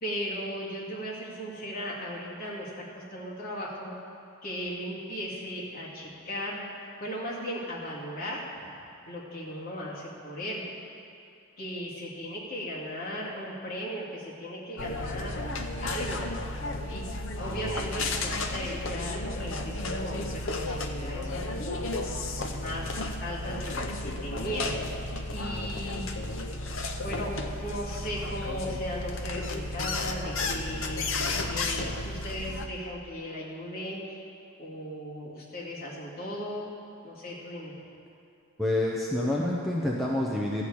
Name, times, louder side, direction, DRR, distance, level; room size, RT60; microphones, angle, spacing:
voice 1, 0.0-4.0 4.4-6.6 7.0-8.7 9.1-10.7 11.6-15.4 15.8-16.4 16.9-17.1 17.4-21.8 22.5-24.8 25.3-26.1 27.0-34.2 34.6-36.7 37.0-37.8, equal, 40° left, -6 dB, 2.3 m, -37 dB
sound 1, 14.8-32.7, left 2 dB, 60° left, 0.7 m, -33 dB
voice 2, 38.6-40.7, left 1 dB, ahead, -5 dB, 0.8 m, -27 dB
13.5 x 4.8 x 8.6 m, 2.5 s
head